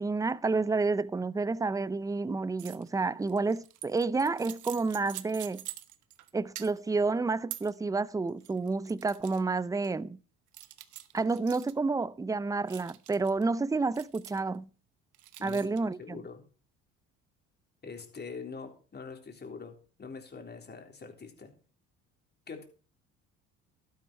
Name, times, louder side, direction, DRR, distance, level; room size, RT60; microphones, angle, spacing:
voice 1, 0.0-5.7 6.3-10.2 11.1-14.7 15.4-16.2, right 3 dB, 10° right, 0.5 m, -30 dB
sound 1, 2.6-2.9 3.2-6.3 6.6-7.0 7.5-7.7 8.3-9.4 9.8-9.9 10.5-11.7 12.7-13.4 13.9-14.6 15.1-15.8, right 14 dB, 70° right, 1.1 m, -45 dB
voice 2, 16.0-16.4 17.8-21.5 22.5-22.6, left 5 dB, 30° left, 3.7 m, -44 dB
12.0 x 10.5 x 4.5 m
supercardioid pair, 85°, 32 cm